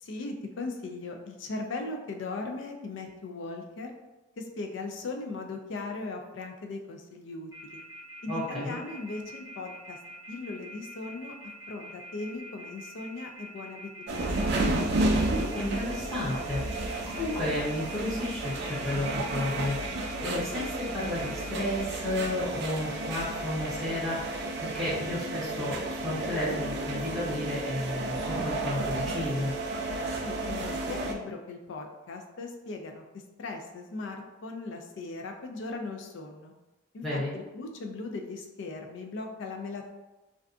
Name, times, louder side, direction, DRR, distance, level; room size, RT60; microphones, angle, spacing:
voice 1, 0.0-3.9 4.4-7.8 8.2-10.0 10.3-11.3 11.7-14.9 30.2-33.0 33.4-36.5 36.9-39.9, left 3 dB, 70° left, 3 dB, 0.4 m, -38 dB
Telephone, 7.5-21.8, right 1 dB, 85° left, 1.4 m, -45 dB
voice 2, 8.3-8.7 15.5-29.5 37.0-37.3, left 1 dB, ahead, -8 dB, 0.6 m, -32 dB
sound 1, 14.1-31.1, right 2 dB, 55° right, 0.3 m, -32 dB
2.5 x 2.2 x 2.4 m, 1.1 s
head